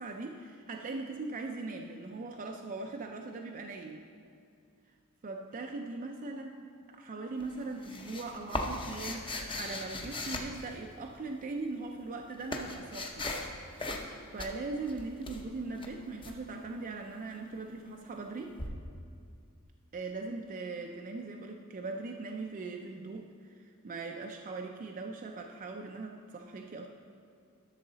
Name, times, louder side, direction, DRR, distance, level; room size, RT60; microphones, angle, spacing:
voice 1, 0.0-4.0 5.2-6.5 6.9-13.3 14.3-18.6 19.9-26.9, right 3 dB, 35° right, 2 dB, 0.4 m, -40 dB
sound 1, 7.4-11.2 11.9-13.5 13.8-14.1 14.4-16.4 18.6-18.7, left 2 dB, 25° left, 0.7 m, -38 dB
12.0 x 6.4 x 4.0 m, 2.4 s
head